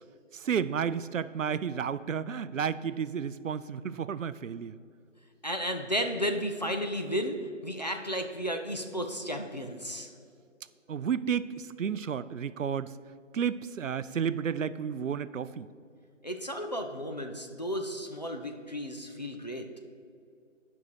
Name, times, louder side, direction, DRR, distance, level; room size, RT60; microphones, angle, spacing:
voice 1, 0.3-4.8 10.9-12.9 13.3-15.7, right 7 dB, 80° right, 15 dB, 0.5 m, -32 dB
voice 2, 5.4-7.4 7.6-10.1 16.2-19.7, equal, 35° left, 4 dB, 0.5 m, -33 dB
10.5 x 5.5 x 4.6 m, 2.4 s
figure-of-eight pair, 155°, 38 cm